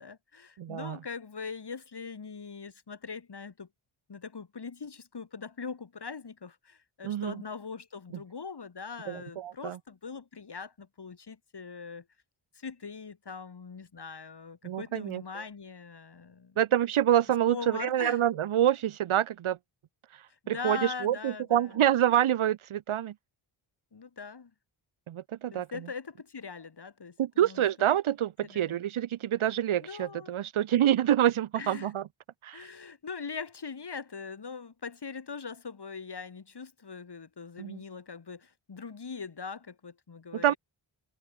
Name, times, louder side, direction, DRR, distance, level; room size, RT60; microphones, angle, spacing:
voice 1, 0.0-3.7 4.1-12.1 12.5-16.6 17.5-18.2 20.3-21.8 23.9-24.5 25.5-27.7 28.4-28.8 29.8-30.4 31.6-31.9 32.5-40.6, left 5 dB, 50° left, 4.2 m, -41 dB
voice 2, 0.6-1.0 7.0-7.4 9.1-9.8 14.6-15.2 16.6-19.6 20.5-23.1 25.1-25.7 27.2-32.0 32.4-32.7 37.6-37.8 40.3-40.5, right 11 dB, 75° right, 0.8 m, -27 dB
wide cardioid pair, 85°, 49 cm